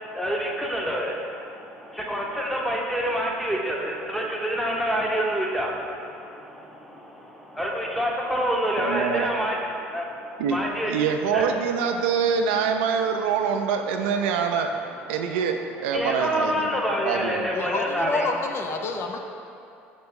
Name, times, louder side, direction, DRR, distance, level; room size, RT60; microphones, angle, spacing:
voice 1, 0.0-10.9 11.3-11.5 15.9-18.3, equal, ahead, -1 dB, 0.9 m, -27 dB
voice 2, 8.8-9.3 10.4-10.6 10.8-14.7 15.1-17.5, right 6 dB, 80° right, 5 dB, 0.4 m, -25 dB
voice 3, 17.5-19.2, left 3 dB, 45° left, 4 dB, 0.5 m, -28 dB
5.8 x 4.4 x 3.7 m, 2.6 s
hypercardioid pair, 80°, 6 cm